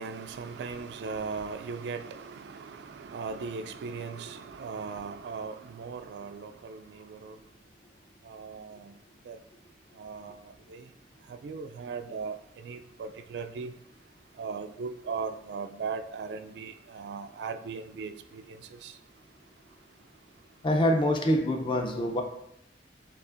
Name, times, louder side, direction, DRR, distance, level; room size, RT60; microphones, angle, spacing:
voice 1, 0.0-7.4 8.3-9.0 9.3-9.4 10.0-10.8 11.4-12.4 12.6-13.7 14.4-18.9, right 5 dB, 65° right, 9 dB, 0.3 m, -38 dB
voice 2, 20.6-22.2, left 1 dB, 30° left, 4 dB, 0.5 m, -25 dB
6.9 x 2.4 x 2.5 m, 0.79 s
head